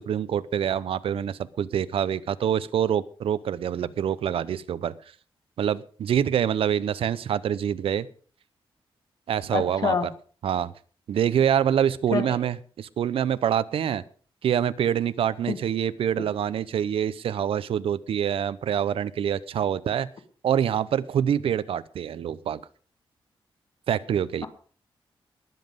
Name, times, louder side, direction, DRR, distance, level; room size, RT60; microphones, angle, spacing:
voice 1, 0.0-4.9 5.6-8.1 9.3-10.0 10.4-10.7 11.1-14.0 14.4-20.1 20.4-22.6 23.9-24.5, right 9 dB, 85° right, 16 dB, 0.7 m, -25 dB
voice 2, 9.5-10.1 12.1-12.3 15.5-15.6, left 5 dB, 45° left, 6 dB, 2.0 m, -25 dB
20.5 x 7.6 x 5.2 m, 0.42 s
wide cardioid pair, 165°, 9 cm